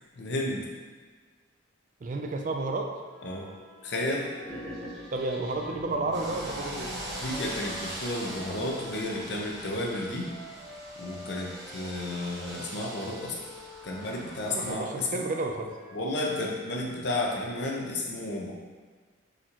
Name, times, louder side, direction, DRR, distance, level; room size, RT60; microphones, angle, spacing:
voice 1, 0.1-0.7 3.2-3.6 3.8-4.3 7.1-10.3 11.0-13.4 13.8-15.1 15.9-18.5, left 1 dB, 55° left, -1 dB, 0.6 m, -32 dB
voice 2, 2.0-2.9 5.1-6.9 14.5-15.7, right 2 dB, 40° right, 3 dB, 0.3 m, -31 dB
sound 1, 3.0-9.1 9.6-16.3, left 1 dB, 75° right, 1.4 m, -48 dB
sound 2, 4.4-7.5, equal, ahead, 0.8 m, -42 dB
sound 3, 6.1-14.7, right 1 dB, 55° right, 1.0 m, -41 dB
4.2 x 3.7 x 2.9 m, 1.5 s
head